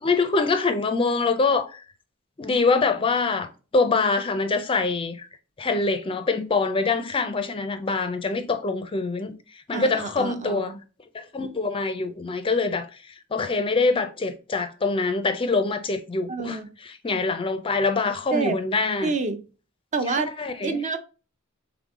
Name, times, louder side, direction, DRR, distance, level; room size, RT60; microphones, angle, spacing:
voice 1, 0.0-1.8 2.4-3.5 3.7-5.3 5.6-9.4 9.7-10.8 11.3-12.9 13.3-16.6 17.0-19.1 20.4-20.7, left 3 dB, 25° left, 0.4 m, -24 dB
voice 2, 9.7-10.8 16.3-16.7 18.3-18.6 19.0-19.4 19.9-20.3 20.6-21.0, right 4 dB, 35° right, 0.5 m, -28 dB
3.8 x 3.5 x 3.6 m
head